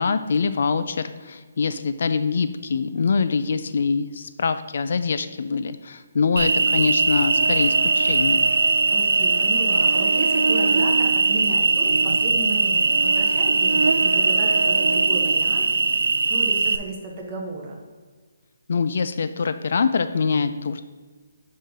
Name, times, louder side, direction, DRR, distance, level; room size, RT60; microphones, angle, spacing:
voice 1, 0.0-8.5 18.7-20.8, left 5 dB, 50° left, 11 dB, 0.3 m, -24 dB
Cricket, 6.4-16.8, right 4 dB, 90° right, 0.4 m, -20 dB
voice 2, 8.9-16.0 16.3-17.8, right 2 dB, 20° right, -1 dB, 1.1 m, -33 dB
5.6 x 5.4 x 5.0 m, 1.5 s
hypercardioid pair, 175°, 0 cm